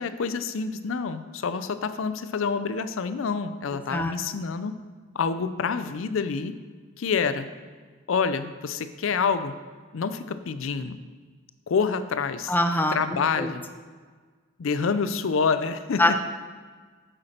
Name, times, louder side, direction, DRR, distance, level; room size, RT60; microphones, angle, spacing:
voice 1, 0.0-4.7 5.1-6.5 7.0-7.5 8.1-9.6 9.9-11.0 11.7-12.5 12.9-13.6 14.6-16.2, left 5 dB, 70° left, 12 dB, 0.5 m, -27 dB
voice 2, 12.5-13.0 13.4-13.5 16.0-16.3, left 1 dB, 10° left, 7 dB, 0.5 m, -23 dB
8.5 x 7.8 x 4.3 m, 1.5 s
head